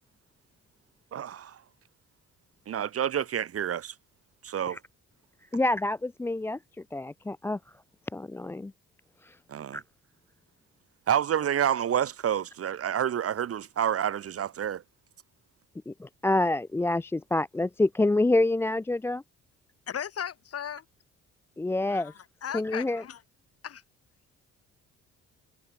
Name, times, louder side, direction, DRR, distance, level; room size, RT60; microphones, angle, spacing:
voice 1, 1.1-1.6 2.7-3.9 4.4-4.8 9.5-9.8 11.1-14.8, right 9 dB, 50° right, 1.0 m, -28 dB
voice 2, 5.5-6.6 6.9-7.6 8.1-8.7 9.2-9.4 9.7-9.8 15.9-19.2 21.6-22.1 22.5-23.0, left 2 dB, 10° left, 0.3 m, -27 dB
voice 3, 19.9-20.8 21.9-22.1 22.4-23.2 23.6-23.8, left 9 dB, 50° left, 1.6 m, -36 dB
cardioid pair, 90°, 30 cm